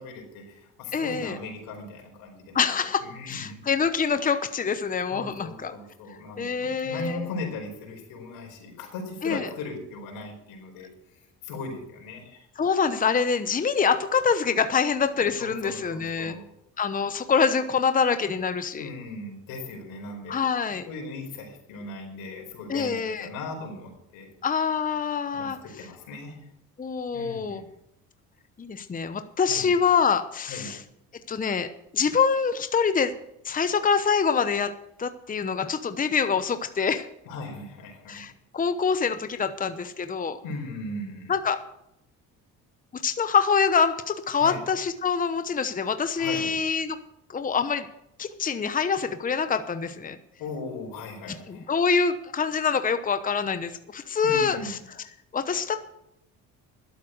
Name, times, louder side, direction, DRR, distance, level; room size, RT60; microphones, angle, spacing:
voice 1, 0.0-3.6 5.1-10.9 11.4-12.5 15.1-16.5 18.7-20.4 20.9-24.3 25.3-26.4 27.1-27.6 29.5-29.7 30.5-30.7 37.2-38.3 40.4-41.3 44.4-44.6 46.2-46.6 50.4-51.7 54.2-54.7, left 3 dB, 80° left, 1 dB, 4.8 m, -38 dB
voice 2, 0.9-1.4 2.5-5.7 6.4-7.3 9.2-9.5 12.6-16.4 16.8-18.9 20.3-20.9 22.7-23.3 24.4-25.6 26.8-27.6 28.6-30.8 31.3-33.1 33.4-34.7 35.0-37.1 38.1-40.4 41.3-41.6 42.9-47.0 47.3-47.9 48.2-50.2 51.5-54.8 55.3-55.8, left 6 dB, 25° left, 10 dB, 0.9 m, -25 dB
12.0 x 8.4 x 7.8 m, 0.79 s
supercardioid pair, 85°, 34 cm